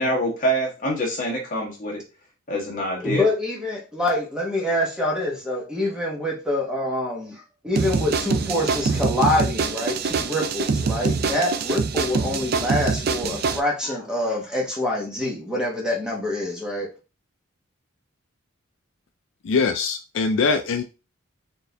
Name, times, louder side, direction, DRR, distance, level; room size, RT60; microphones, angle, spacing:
voice 1, 0.0-2.0 2.5-3.3, equal, 40° left, 1.4 m, -25 dB
voice 2, 3.0-16.9, left 1 dB, 5° right, 1.0 m, -25 dB
sound 1, 7.8-13.6, right 4 dB, 45° right, 0.4 m, -24 dB
voice 3, 19.4-20.8, left 4 dB, 65° left, 0.4 m, -22 dB
4.4 x 2.6 x 3.3 m
head